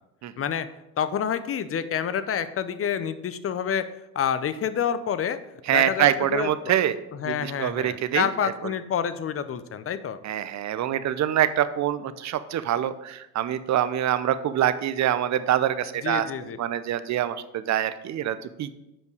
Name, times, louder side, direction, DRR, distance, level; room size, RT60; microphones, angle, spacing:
voice 1, 0.4-0.7 1.0-3.9 4.1-5.4 5.7-6.7 7.1-10.2 16.0-16.6, left 8 dB, 30° left, 13 dB, 0.6 m, -28 dB
voice 2, 5.7-7.0 7.2-8.3 10.2-16.3 16.6-18.7, right 11 dB, 40° right, 13 dB, 0.6 m, -25 dB
7.3 x 5.3 x 4.8 m, 0.91 s
hypercardioid pair, 70°, 44 cm